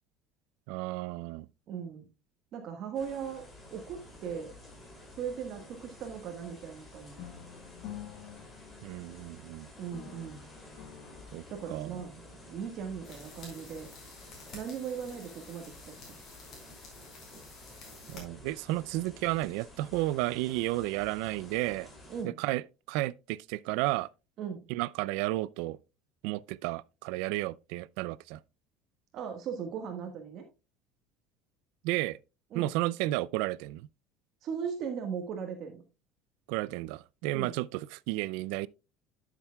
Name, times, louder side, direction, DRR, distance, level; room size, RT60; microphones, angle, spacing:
voice 1, 0.7-1.5 8.8-9.7 11.3-11.4 11.7-12.0 18.1-21.9 22.4-24.1 24.7-25.8 26.2-28.4 31.8-32.2 32.5-33.9 36.5-38.7, right 18 dB, 75° right, 0.4 m, -32 dB
voice 2, 1.7-2.1 2.5-4.5 5.2-7.3 9.8-10.4 11.5-13.9 14.5-16.2 22.1-22.4 24.4-24.6 29.1-30.4 32.5-32.7 34.4-35.8 37.3-37.6, right 7 dB, 45° right, 1.5 m, -38 dB
sound 1, 2.9-22.2, left 1 dB, 15° left, 2.8 m, -52 dB
sound 2, 7.2-9.5 9.9-12.2, left 11 dB, 75° left, 0.9 m, -48 dB
sound 3, 13.0-18.2, left 3 dB, 40° left, 4.7 m, -51 dB
12.0 x 7.3 x 2.3 m
cardioid pair, 155°, 0 cm